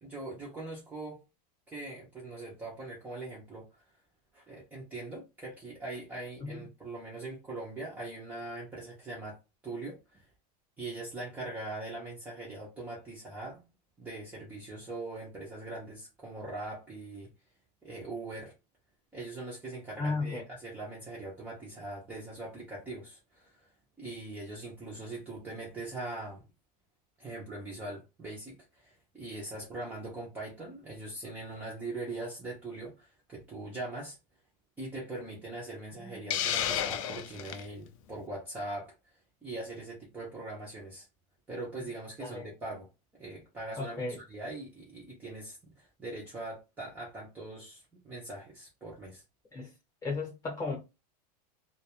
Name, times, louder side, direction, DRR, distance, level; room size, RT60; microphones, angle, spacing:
voice 1, 0.0-1.2 1.7-3.7 4.3-9.4 9.6-10.2 10.8-13.6 14.0-17.3 17.8-18.5 19.1-23.7 24.0-26.4 27.2-34.2 34.8-38.9 39.4-41.1 41.5-42.9 43.2-49.2, right 2 dB, 10° right, 0.5 m, -41 dB
voice 2, 20.0-20.4 36.0-36.3 42.2-42.5 43.8-44.2 49.5-49.7 50.0-50.8, left 3 dB, 15° left, 0.8 m, -35 dB
Hiss, 36.3-37.6, left 10 dB, 55° left, 0.4 m, -31 dB
2.2 x 2.2 x 2.8 m
supercardioid pair, 165°, 21 cm